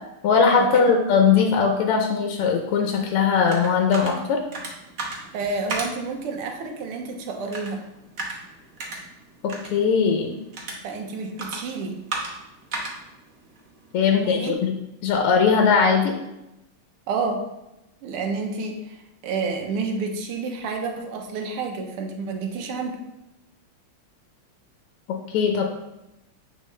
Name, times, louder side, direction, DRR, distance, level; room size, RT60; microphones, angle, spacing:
voice 1, 0.2-4.4 9.4-10.3 13.9-14.7 15.0-16.1 25.3-25.6, left 5 dB, 85° left, 3 dB, 1.6 m, -20 dB
sound 1, 2.9-14.5, right 3 dB, 50° right, 1.2 m, -37 dB
voice 2, 5.3-7.8 10.8-12.0 14.1-14.6 17.1-17.5 18.0-19.0 19.2-23.0, right 4 dB, 85° right, 4 dB, 1.7 m, -29 dB
9.1 x 3.6 x 3.2 m, 0.92 s
omnidirectional pair, 2.4 m